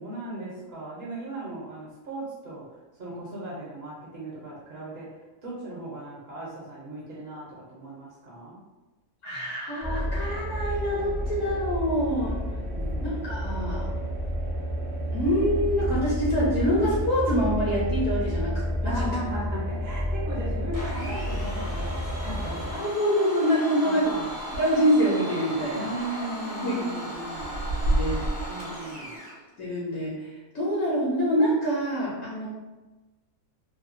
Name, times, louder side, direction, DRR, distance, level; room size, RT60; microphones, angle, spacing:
voice 1, 0.0-8.6 12.7-13.2 18.8-22.9 23.8-24.4 25.7-27.7 28.5-29.1, right 2 dB, 55° right, -6 dB, 0.9 m, -37 dB
voice 2, 9.2-12.4 13.0-13.9 15.1-19.1 22.8-24.1 24.5-25.9 26.6-27.0 27.8-28.5 29.6-32.5, equal, 75° left, -6 dB, 1.1 m, -26 dB
sound 1, 9.8-22.7, equal, 10° right, 0.5 m, -30 dB
Domestic sounds home sounds, 20.7-29.4, right 1 dB, 70° right, 0.3 m, -37 dB
sound 2, 24.1-24.8 25.2-25.3 26.0-26.3 26.9-28.5, right 1 dB, 90° left, 1.2 m, -28 dB
2.8 x 2.2 x 2.5 m, 1.2 s
omnidirectional pair, 1.5 m